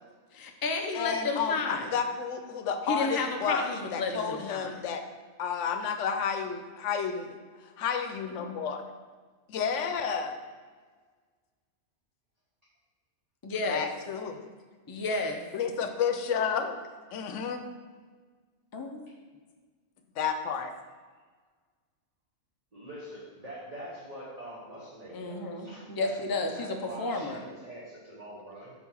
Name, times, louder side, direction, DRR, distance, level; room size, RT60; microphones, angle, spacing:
voice 1, 0.3-1.9 2.9-4.9 13.4-13.9 14.9-15.4 18.7-19.1 25.1-27.4, left 3 dB, 35° left, 3 dB, 0.3 m, -32 dB
voice 2, 0.9-5.0 5.4-7.3 7.8-8.8 9.5-10.3 13.7-14.4 15.5-16.7 17.1-17.6 20.2-20.7, left 6 dB, 80° left, 7 dB, 0.9 m, -31 dB
voice 3, 22.7-26.1 26.5-28.7, right 1 dB, 35° right, -8 dB, 1.1 m, -44 dB
4.6 x 4.1 x 5.5 m, 1.5 s
omnidirectional pair, 1.3 m